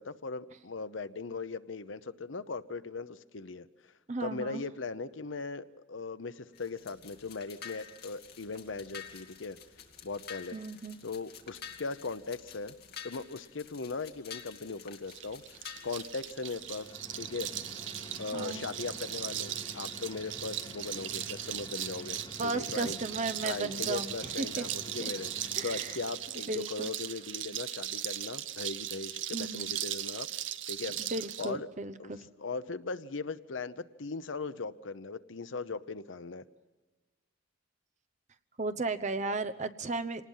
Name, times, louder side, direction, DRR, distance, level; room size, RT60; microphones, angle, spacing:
voice 1, 0.0-3.7 4.2-9.6 10.0-10.6 11.0-12.7 13.0-16.9 17.2-17.5 18.2-23.0 23.4-30.3 30.7-31.0 31.4-31.7 32.0-32.1 32.4-36.4, left 4 dB, 75° left, 13 dB, 0.8 m, -39 dB
voice 2, 4.1-4.6 10.5-11.0 18.3-18.7 22.4-24.7 25.5-26.0 26.5-26.9 29.3-29.7 30.9-32.3 38.6-40.3, right 3 dB, 40° right, 9 dB, 0.9 m, -35 dB
sound 1, 6.5-16.9, left 8 dB, 55° left, 2.2 m, -49 dB
sound 2, 15.1-31.5, right 12 dB, 70° right, 0.8 m, -38 dB
sound 3, 16.5-26.4, left 1 dB, 25° left, 3.2 m, -49 dB
26.0 x 19.0 x 5.6 m, 1.2 s
head